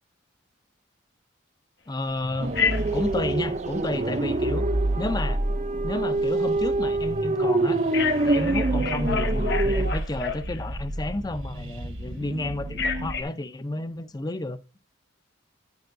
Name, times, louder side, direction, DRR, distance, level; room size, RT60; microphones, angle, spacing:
voice 1, 1.9-2.6 2.9-4.7 5.0-5.4 5.8-7.8 8.2-14.6, left 2 dB, 20° left, 0.5 m, -31 dB
sound 1, 2.1-13.2, right 1 dB, 80° right, 1.3 m, -31 dB
sound 2, 2.4-9.9, right 2 dB, 35° right, 0.5 m, -26 dB
Telephone, 2.5-3.1 7.9-10.8 12.7-13.2, left 6 dB, 55° left, 1.2 m, -29 dB
10.5 x 9.8 x 2.6 m
head